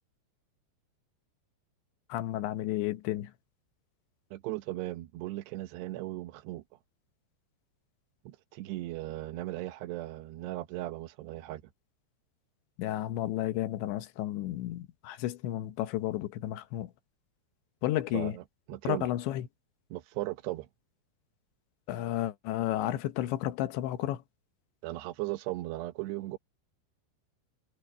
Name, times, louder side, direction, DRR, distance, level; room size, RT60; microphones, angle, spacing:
voice 1, 2.1-3.3 12.8-16.9 17.8-18.4 18.8-19.5 21.9-24.2, left 14 dB, 85° left, 3.4 m, -32 dB
voice 2, 4.3-6.6 8.3-11.6 18.1-18.4 18.7-19.1 19.9-20.7 24.8-26.4, right 17 dB, 75° right, 3.0 m, -37 dB
omnidirectional pair, 5.1 m